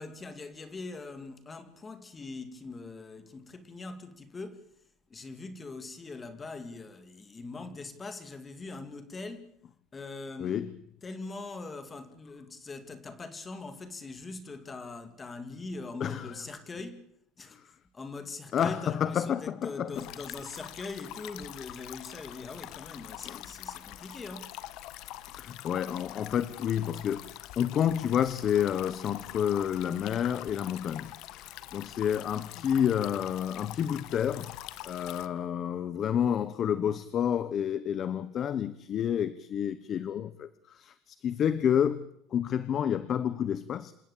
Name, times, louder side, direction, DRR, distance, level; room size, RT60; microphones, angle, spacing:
voice 1, 0.0-4.7 5.1-9.5 9.9-10.6 11.0-17.1 17.4-17.6 17.9-24.6, left 3 dB, 20° left, 2.3 m, -42 dB
voice 2, 10.4-10.7 16.0-16.3 17.5-17.7 18.5-20.0 23.2-23.4 25.3-34.6 34.8-43.9, left 9 dB, 40° left, 1.1 m, -29 dB
sound 1, 19.9-35.3, left 14 dB, 65° left, 1.3 m, -45 dB
27.5 x 17.0 x 8.7 m
cardioid pair, 155°, 0 cm